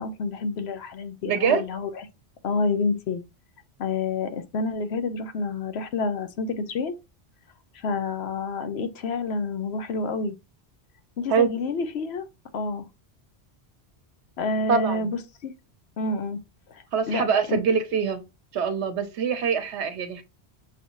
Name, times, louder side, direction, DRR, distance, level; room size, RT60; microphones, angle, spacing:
voice 1, 0.0-1.9 2.4-3.2 3.8-6.9 7.7-10.4 11.2-12.2 12.5-12.9 14.4-15.5 16.0-16.4 16.7-17.2 17.5-17.6, left 3 dB, 70° left, 0.9 m, -28 dB
voice 2, 1.2-1.6 11.3-11.5 14.7-15.1 16.9-18.2 18.5-20.2, right 6 dB, 80° right, 1.1 m, -24 dB
6.2 x 2.7 x 2.9 m
omnidirectional pair, 1.1 m